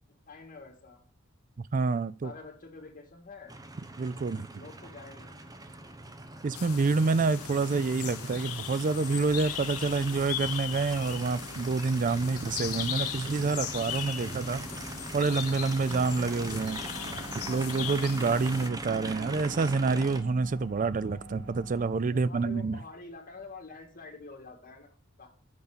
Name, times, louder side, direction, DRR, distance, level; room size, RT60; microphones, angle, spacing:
voice 1, 0.3-1.0 2.2-3.5 4.5-5.4 22.1-25.3, left 3 dB, 40° left, 2.3 m, -47 dB
voice 2, 1.7-2.3 4.0-4.5 6.4-14.7 15.1-16.8 17.5-22.8, right 4 dB, 35° right, 0.4 m, -28 dB
Aircraft, 3.5-20.2, right 2 dB, 15° right, 0.8 m, -41 dB
sound 1, 6.5-18.7, left 11 dB, 80° left, 0.7 m, -38 dB
sound 2, 9.2-21.9, right 1 dB, 85° right, 2.1 m, -49 dB
8.0 x 5.5 x 6.7 m
head